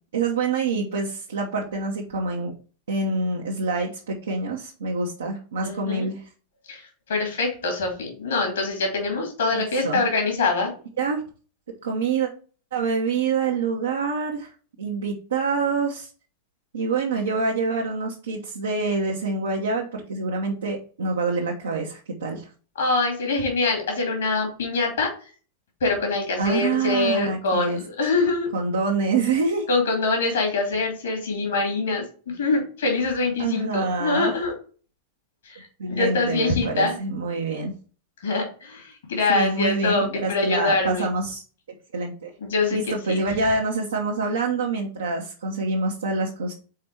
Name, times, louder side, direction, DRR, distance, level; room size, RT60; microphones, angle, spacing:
voice 1, 0.1-2.5 2.9-6.3 9.5-10.0 11.0-11.2 11.8-12.3 12.7-14.5 14.8-16.1 16.7-22.5 26.4-27.8 28.5-29.7 33.4-34.4 35.8-37.7 39.3-41.4 41.9-42.3 42.7-46.5, right 4 dB, 65° right, -1 dB, 1.0 m, -26 dB
voice 2, 5.6-6.1 6.7-10.7 22.8-25.1 25.8-28.5 29.7-34.5 35.4-36.9 38.2-41.1 42.4-43.2, left 3 dB, 65° left, 2 dB, 2.4 m, -24 dB
4.9 x 4.3 x 4.4 m, 0.39 s
figure-of-eight pair, 90°, 0 cm